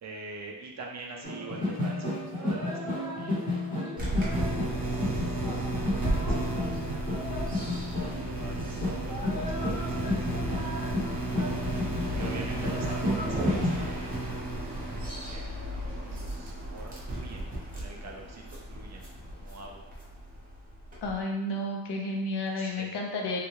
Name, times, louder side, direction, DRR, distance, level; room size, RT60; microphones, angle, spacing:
voice 1, 0.0-3.4 4.1-7.2 8.2-10.6 11.4-14.2 15.3-17.4 17.7-19.0 19.3-19.8 22.6-23.0, right 3 dB, 40° right, 0 dB, 0.4 m, -46 dB
sound 1, 1.2-13.9, left 1 dB, 20° left, 1.0 m, -32 dB
sound 2, 4.0-21.2, right 1 dB, 20° right, 0.8 m, -33 dB
voice 2, 21.0-23.4, left 1 dB, 65° left, 0 dB, 0.7 m, -31 dB
3.3 x 2.3 x 3.0 m, 1.1 s
wide cardioid pair, 165°, 43 cm